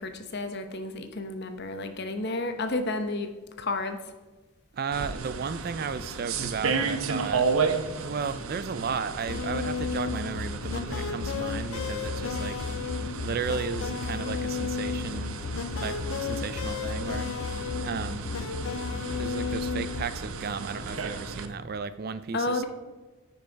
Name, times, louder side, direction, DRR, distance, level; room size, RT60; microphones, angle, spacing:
voice 1, 0.0-4.0 22.3-22.7, left 2 dB, 50° left, 7 dB, 0.8 m, -31 dB
voice 2, 4.7-7.5 8.0-12.6 13.2-15.4 15.8-17.3 17.8-18.3 19.1-22.6, right 5 dB, 45° right, 13 dB, 0.3 m, -34 dB
sound 1, 4.9-21.5, right 4 dB, 70° right, 0.7 m, -34 dB
sound 2, 9.3-20.0, left 5 dB, 65° left, 0.4 m, -32 dB
9.1 x 5.4 x 4.6 m, 1.2 s
head